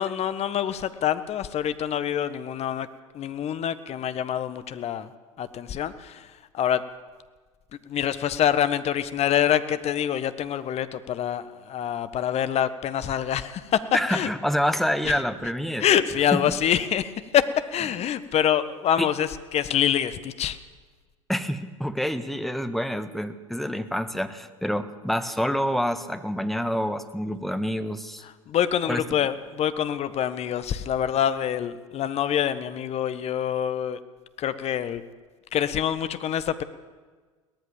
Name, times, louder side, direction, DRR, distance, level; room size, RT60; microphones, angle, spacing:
voice 1, 0.0-2.9 3.1-5.1 5.4-6.8 7.9-13.8 14.1-14.3 15.0-15.1 15.8-20.6 28.5-34.0 34.4-35.0 35.5-36.6, left 10 dB, 35° left, 12 dB, 1.4 m, -26 dB
voice 2, 13.9-15.8 16.3-16.4 19.0-19.1 21.3-28.2 28.9-29.0, equal, ahead, 9 dB, 1.5 m, -27 dB
22.5 x 18.0 x 7.3 m, 1.4 s
figure-of-eight pair, 75°, 17 cm